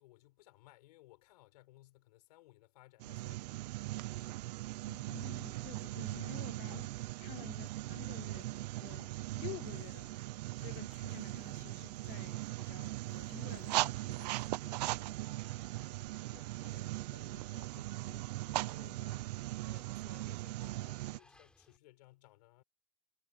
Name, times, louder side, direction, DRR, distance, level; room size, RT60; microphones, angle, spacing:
voice 1, 0.0-4.4 7.6-7.7 16.3-22.6, left 18 dB, 80° left, 6.5 m, -61 dB
sound 1, 3.0-21.2, right 18 dB, 90° right, 0.5 m, -39 dB
voice 2, 4.9-10.2 10.6-14.4 14.6-15.4, left 22 dB, 35° left, 0.3 m, -51 dB
Water, 8.2-21.8, left 1 dB, 5° left, 5.9 m, -67 dB
supercardioid pair, 160°, 20 cm